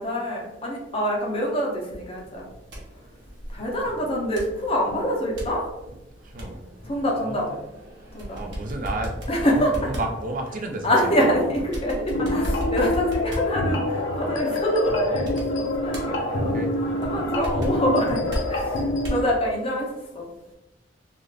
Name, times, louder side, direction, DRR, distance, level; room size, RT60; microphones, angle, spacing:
voice 1, 0.0-2.5 3.5-5.7 6.8-7.5 8.1-8.4 9.3-9.9 10.8-16.5 17.0-20.3, equal, 30° left, -2 dB, 0.7 m, -25 dB
sound 1, 2.3-19.3, equal, 65° right, 1.0 m, -36 dB
voice 2, 7.2-7.5 8.3-11.5 16.5-16.7, right 2 dB, 45° right, 4 dB, 0.5 m, -32 dB
sound 2, 12.1-19.2, left 1 dB, 75° left, 0.6 m, -26 dB
2.5 x 2.4 x 3.2 m, 0.96 s
head